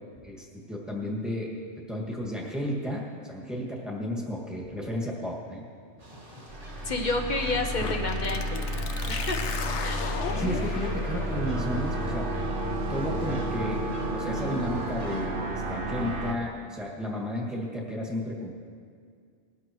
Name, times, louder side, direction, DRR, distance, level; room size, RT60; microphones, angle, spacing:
voice 1, 0.2-5.6 10.4-12.3 12.9-13.8 14.1-18.5, equal, ahead, -3 dB, 2.0 m, -33 dB
sound 1, 6.0-15.3, right 1 dB, 30° right, 2.4 m, -46 dB
sound 2, 6.5-16.3, right 1 dB, 50° right, 1.2 m, -31 dB
voice 2, 6.8-8.8 9.1-9.4 9.8-10.0, left 2 dB, 40° left, 3 dB, 1.1 m, -30 dB
sound 3, 7.8-15.3, left 5 dB, 75° left, 1.1 m, -38 dB
20.5 x 13.0 x 3.1 m, 2.2 s
omnidirectional pair, 1.2 m